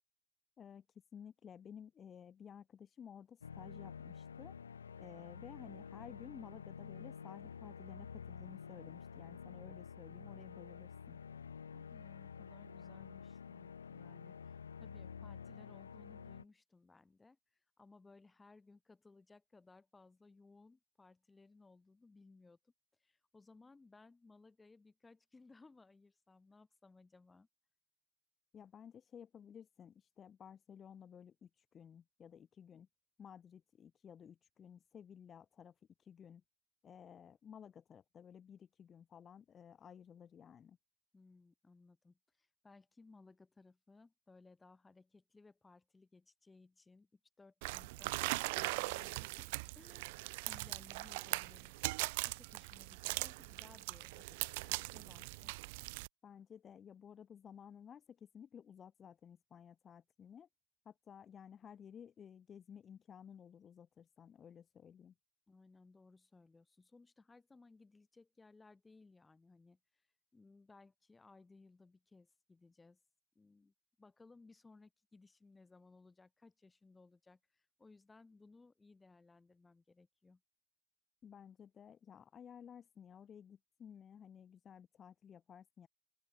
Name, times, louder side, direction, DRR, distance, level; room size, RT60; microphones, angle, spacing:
voice 1, 0.6-4.5 5.0-11.2 28.5-32.9 33.2-36.4 36.8-40.8 56.2-60.5 60.8-65.1 81.2-85.9, left 8 dB, 30° left, 0.7 m, -55 dB
sound 1, 3.4-16.4, left 6 dB, 80° left, 1.9 m, -50 dB
voice 2, 11.7-17.4 17.8-22.7 23.0-27.5 41.1-49.5 49.8-50.2 50.4-55.5 65.5-69.8 70.3-73.0 73.4-80.4, left 3 dB, 10° left, 7.5 m, -63 dB
sound 2, 47.6-56.1, right 24 dB, 55° right, 0.6 m, -40 dB
open air
figure-of-eight pair, 85°, 0 cm